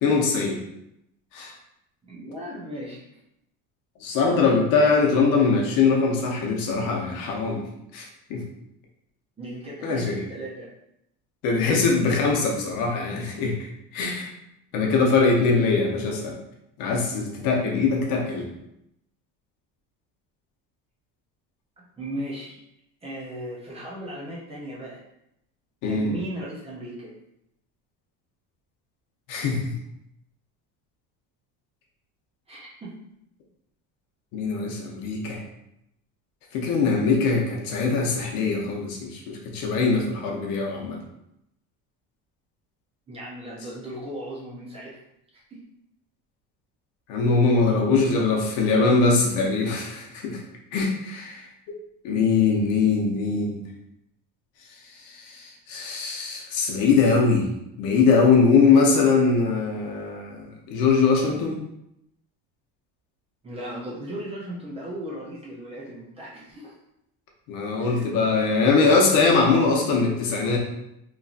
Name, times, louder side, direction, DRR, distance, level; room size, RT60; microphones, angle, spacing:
voice 1, 0.0-0.6 1.3-1.5 4.0-7.6 7.9-8.4 9.8-10.2 11.4-13.5 13.9-14.3 14.7-16.3 16.8-18.5 25.8-26.1 29.3-29.7 34.3-35.4 36.5-41.0 47.1-50.4 50.7-51.4 52.0-53.6 55.1-57.5 57.8-61.5 67.5-70.6, left 4 dB, 70° left, 0 dB, 0.8 m, -22 dB
voice 2, 2.0-3.2 9.4-10.7 11.7-11.8 22.0-22.6 23.0-25.0 25.8-27.1 32.5-33.0 43.1-45.0 45.5-45.6 63.4-66.7 67.8-68.1, right 1 dB, 15° right, -5 dB, 0.5 m, -36 dB
3.0 x 2.6 x 2.4 m, 0.81 s
cardioid pair, 165°, 35 cm